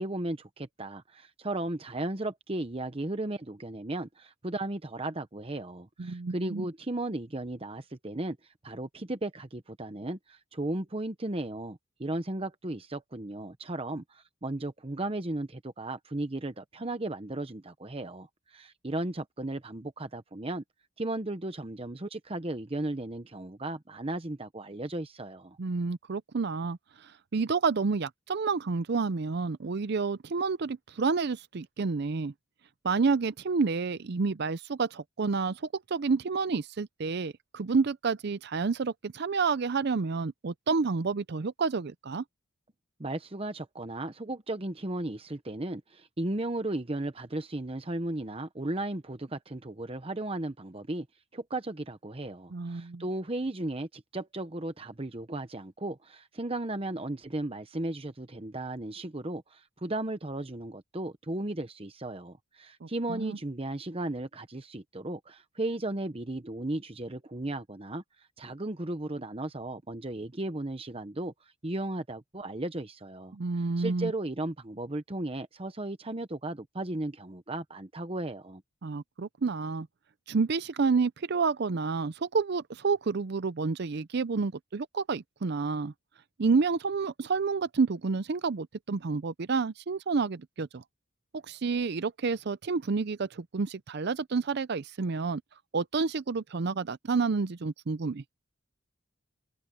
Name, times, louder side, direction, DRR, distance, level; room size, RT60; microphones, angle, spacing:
voice 1, 0.0-20.6 21.0-25.6 43.0-51.1 51.3-73.4 73.8-78.6, right 2 dB, 25° right, 0.9 m, -35 dB
voice 2, 6.0-6.7 25.6-32.3 32.8-35.6 35.9-42.2 52.5-53.0 62.8-63.4 73.3-74.1 78.8-79.9 80.3-85.9 86.4-90.8 91.3-95.4 95.7-98.2, right 4 dB, 50° right, 0.5 m, -29 dB
open air
head